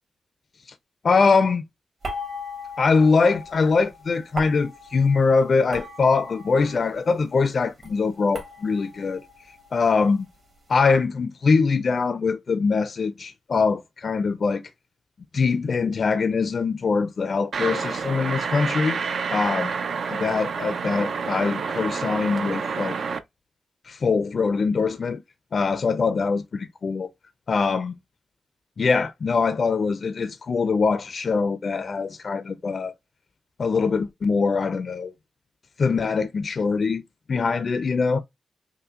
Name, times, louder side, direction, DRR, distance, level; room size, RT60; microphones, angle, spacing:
voice 1, 1.0-1.6 2.8-9.2 9.7-10.3 10.7-14.6 15.3-19.0 19.3-19.7 20.1-22.9 23.9-25.2 25.5-27.1 27.5-27.9 28.8-32.9 33.6-35.1 35.8-37.0 37.3-38.2, left 4 dB, 50° left, 0.4 m, -23 dB
sound 1, 2.0-7.3 7.6-10.5, left 1 dB, 50° right, 1.6 m, -39 dB
sound 2, 17.5-23.2, right 5 dB, 65° right, 0.5 m, -28 dB
5.7 x 2.1 x 2.4 m
wide cardioid pair, 115°, 0 cm